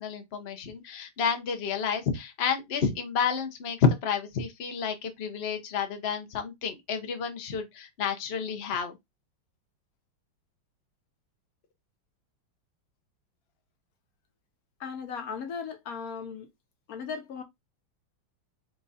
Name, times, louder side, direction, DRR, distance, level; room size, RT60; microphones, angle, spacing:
voice 1, 0.0-9.0, left 6 dB, 80° left, 0.5 m, -30 dB
voice 2, 14.8-16.5 16.9-17.4, left 6 dB, 60° left, 1.1 m, -37 dB
4.5 x 2.4 x 4.0 m
omnidirectional pair, 2.2 m